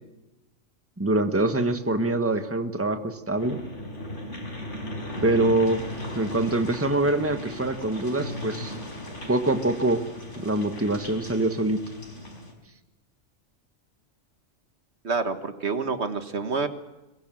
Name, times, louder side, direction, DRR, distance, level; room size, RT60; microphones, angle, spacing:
voice 1, 1.0-3.6 5.2-5.8 6.1-8.7 9.3-10.0 10.4-11.8, right 2 dB, 10° right, 8 dB, 1.5 m, -24 dB
sound 1, 3.4-12.5, left 1 dB, 80° left, 5.5 m, -37 dB
voice 2, 5.1-5.4 15.0-16.7, right 4 dB, 65° right, 9 dB, 1.8 m, -28 dB
23.0 x 21.5 x 7.8 m, 1.1 s
omnidirectional pair, 1.2 m